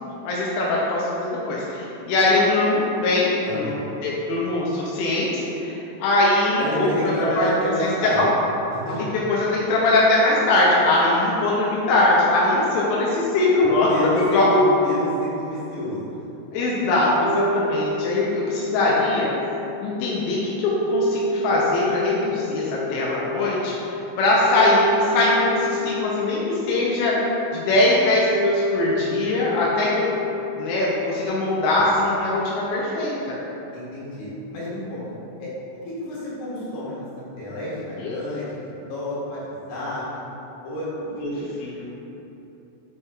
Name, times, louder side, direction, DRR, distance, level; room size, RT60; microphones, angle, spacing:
voice 1, 0.2-3.7 4.0-7.1 7.4-7.5 8.0-8.3 8.9-13.9 14.3-14.7 16.5-19.3 19.8-27.2 27.5-33.4 38.0-38.1 41.2-41.3 41.6-41.8, left 2 dB, 90° left, -5 dB, 3.3 m, -21 dB
voice 2, 3.4-3.9 6.6-8.3 8.7-9.0 13.9-16.3 33.7-35.0 35.4-37.1 37.4-38.6 38.9-40.0 40.6-41.4, equal, 75° left, -8 dB, 3.8 m, -29 dB
sound 1, 17.1-31.3, left 2 dB, 85° right, 3.0 m, -29 dB
7.7 x 5.4 x 2.4 m, 3.0 s
omnidirectional pair, 5.5 m